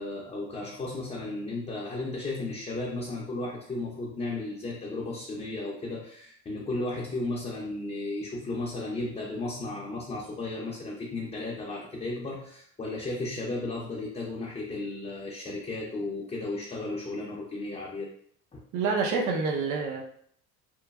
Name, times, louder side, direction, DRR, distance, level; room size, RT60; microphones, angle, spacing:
voice 1, 0.0-18.1 18.5-18.6, left 2 dB, 20° left, -3 dB, 0.5 m, -34 dB
voice 2, 18.7-20.0, right 4 dB, 60° right, 1 dB, 0.7 m, -27 dB
3.0 x 2.1 x 2.3 m, 0.63 s
supercardioid pair, 90°, 35 cm